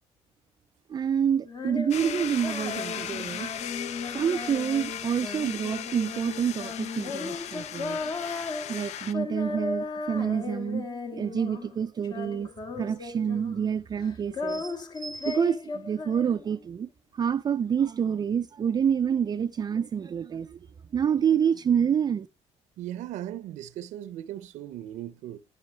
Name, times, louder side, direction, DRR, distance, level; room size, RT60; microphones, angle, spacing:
voice 1, 0.9-3.5 4.1-8.1 8.7-12.5 12.8-20.6 20.9-22.3, right 8 dB, 35° right, 0.3 m, -28 dB
Female singing, 1.4-11.8 12.0-13.7 14.0-16.6, left 3 dB, 35° left, 1.3 m, -36 dB
sound 1, 1.9-9.1, left 10 dB, 65° left, 0.6 m, -37 dB
voice 2, 22.8-25.4, right 12 dB, 85° right, 0.6 m, -38 dB
11.0 x 5.5 x 4.4 m
cardioid pair, 95°, 12 cm